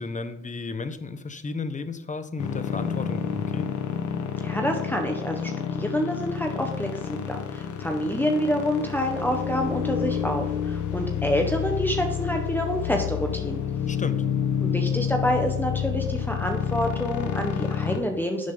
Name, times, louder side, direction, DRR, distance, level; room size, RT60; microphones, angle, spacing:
voice 1, 0.0-3.7 13.9-14.2, left 4 dB, 25° left, 10 dB, 1.0 m, -33 dB
sound 1, 2.4-18.0, left 8 dB, 75° left, 1.4 m, -29 dB
voice 2, 4.4-13.6 14.6-18.5, equal, 5° left, 2 dB, 1.2 m, -27 dB
12.0 x 7.3 x 3.9 m, 0.84 s
cardioid pair, 90°, 30 cm